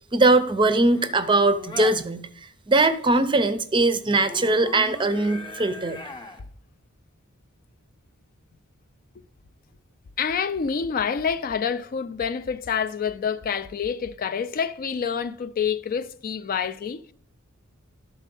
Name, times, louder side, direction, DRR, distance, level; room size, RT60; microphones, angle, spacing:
voice 1, 0.1-2.3 2.7-6.0, right 2 dB, 20° right, 0.6 m, -21 dB
sound 1, 0.7-2.0 3.9-6.5 10.5-10.7, left 2 dB, 20° left, 0.7 m, -40 dB
voice 2, 10.2-17.1, left 6 dB, 40° left, 0.4 m, -27 dB
11.5 x 4.1 x 5.3 m
head